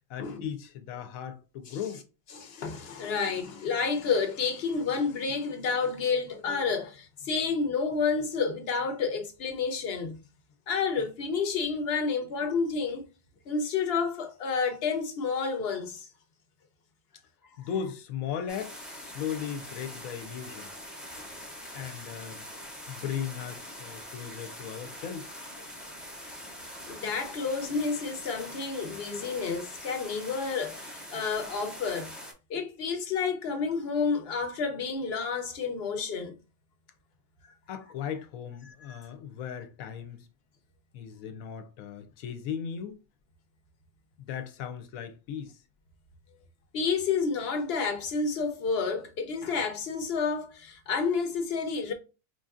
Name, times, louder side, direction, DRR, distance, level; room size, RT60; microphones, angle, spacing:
voice 1, 0.1-2.0 17.6-20.7 21.7-22.5 22.9-25.3 37.7-40.3 40.9-43.0 44.2-45.6, left 8 dB, 85° left, 1.0 m, -37 dB
voice 2, 2.3-10.2 10.7-13.0 13.5-16.1 26.9-32.1 32.5-36.4 38.7-38.8 46.7-51.9, left 5 dB, 55° left, 0.8 m, -30 dB
sound 1, 18.5-32.3, equal, ahead, 0.5 m, -43 dB
4.5 x 2.6 x 2.4 m
omnidirectional pair, 1.4 m